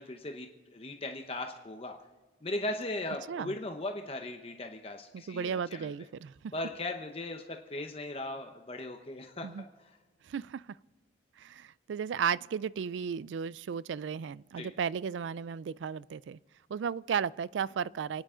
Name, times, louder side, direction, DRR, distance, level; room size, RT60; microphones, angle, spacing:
voice 1, 0.0-2.0 2.4-5.9 6.5-7.4 7.7-9.5 14.6-14.7, left 2 dB, 30° left, 0.9 m, -38 dB
voice 2, 5.1-6.5 9.4-9.6 10.2-10.8 11.4-16.4 16.7-18.2, right 7 dB, 85° right, 0.3 m, -34 dB
29.0 x 9.9 x 3.8 m
head